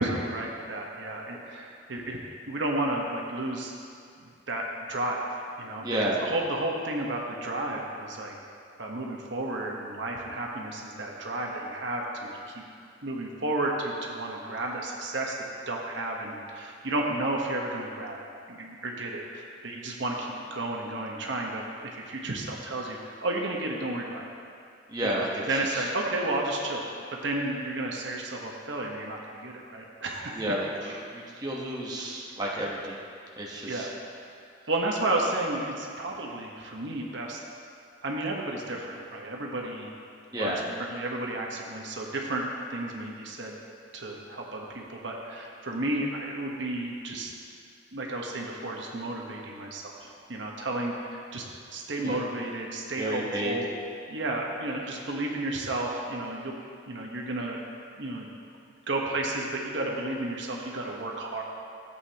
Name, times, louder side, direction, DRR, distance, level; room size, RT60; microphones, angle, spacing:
voice 1, 0.0-2.2 2.5-3.7 4.2-5.2 5.6-5.9 6.2-8.3 8.8-12.6 13.0-15.4 15.7-24.3 25.0-26.9 27.2-30.4 30.8-30.9 32.0-32.1 33.7-33.9 34.7-37.4 38.0-39.9 40.3-40.6 40.9-43.6 43.9-47.3 47.9-51.4 51.7-53.7 54.1-56.6 56.9-57.6 58.0-58.3 58.9-61.4, right 2 dB, 65° right, -1 dB, 1.1 m, -32 dB
voice 2, 5.8-6.3 24.9-25.9 30.4-33.0 33.4-33.9 40.3-40.6 52.0-52.2 53.0-53.6, right 1 dB, 20° right, -4 dB, 1.1 m, -31 dB
14.5 x 8.2 x 2.9 m, 2.4 s
head